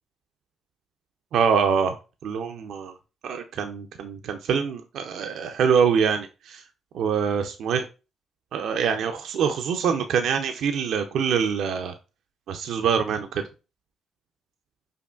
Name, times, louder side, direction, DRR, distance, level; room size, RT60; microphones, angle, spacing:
voice 1, 1.3-1.9 2.2-2.9 3.2-6.6 6.9-7.9 8.5-11.9 12.5-13.4, right 6 dB, 75° right, 6 dB, 0.4 m, -24 dB
5.0 x 2.4 x 2.3 m, 0.31 s
supercardioid pair, 50°, 0 cm